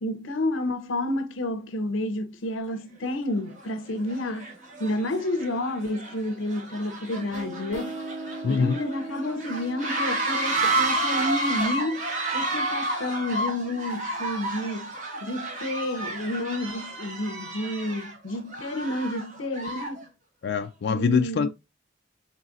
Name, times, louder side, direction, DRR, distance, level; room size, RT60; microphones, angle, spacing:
voice 1, 0.0-4.5 4.8-8.0 8.5-12.1 12.3-14.9 15.2-20.1 20.9-21.5, left 1 dB, 90° left, 0.7 m, -30 dB
sound 1, 2.7-2.8 3.5-3.7 4.1-20.0, right 2 dB, 40° right, 1.3 m, -31 dB
sound 2, 7.3-12.7, right 2 dB, 85° right, 0.9 m, -40 dB
voice 2, 8.4-8.8 20.4-21.5, left 5 dB, 60° left, 0.3 m, -24 dB
3.9 x 3.9 x 2.5 m
head